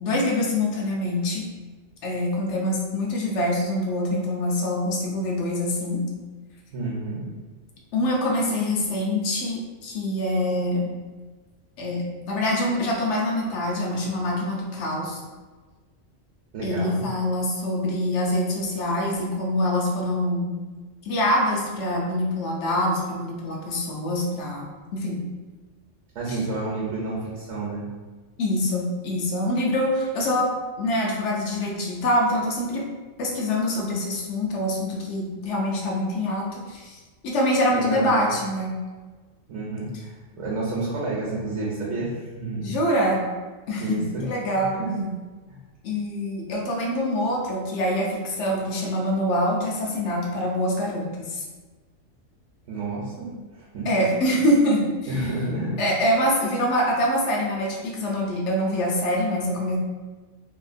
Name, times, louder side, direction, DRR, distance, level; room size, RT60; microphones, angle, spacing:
voice 1, 0.0-1.5 2.0-6.0 7.9-10.9 11.8-15.2 16.6-20.5 21.0-25.2 26.3-26.4 28.4-30.5 30.8-32.9 33.2-38.7 42.6-43.3 43.7-44.7 45.8-51.4 53.8-55.3 55.8-59.8, left 1 dB, 70° left, -2 dB, 0.9 m, -25 dB
voice 2, 6.7-7.2 16.5-17.0 26.1-27.8 37.7-38.2 39.5-42.8 43.8-44.3 44.6-45.1 45.5-45.6 52.7-53.9 55.1-55.7, right 2 dB, 75° right, -5 dB, 1.0 m, -30 dB
2.8 x 2.4 x 2.5 m, 1.3 s
omnidirectional pair, 1.3 m